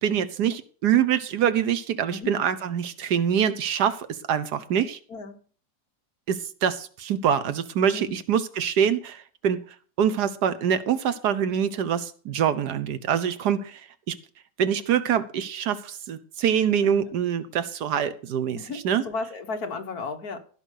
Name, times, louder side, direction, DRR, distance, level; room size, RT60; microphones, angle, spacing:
voice 1, 0.0-5.0 6.3-9.6 10.0-13.8 14.1-14.2 14.6-18.6 18.8-19.0, right 8 dB, 70° right, 13 dB, 1.4 m, -25 dB
voice 2, 18.5-20.4, left 4 dB, 60° left, 6 dB, 1.8 m, -34 dB
16.0 x 5.4 x 6.4 m, 0.43 s
omnidirectional pair, 1.8 m